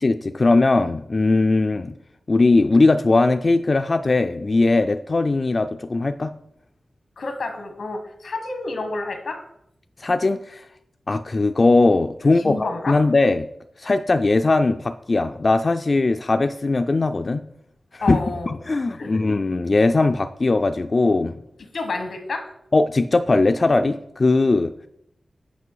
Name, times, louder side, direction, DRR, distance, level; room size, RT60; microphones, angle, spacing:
voice 1, 0.0-1.9 2.3-6.3 10.0-10.6 11.1-13.5 13.8-17.4 17.9-18.2 18.5-21.4 22.7-24.7, left 3 dB, 40° left, 7 dB, 0.3 m, -19 dB
voice 2, 7.2-9.4 12.4-13.0 18.0-18.5 19.0-19.2 21.7-22.4, left 3 dB, 90° left, 6 dB, 1.3 m, -29 dB
8.2 x 5.4 x 4.7 m, 0.77 s
wide cardioid pair, 120°, 0 cm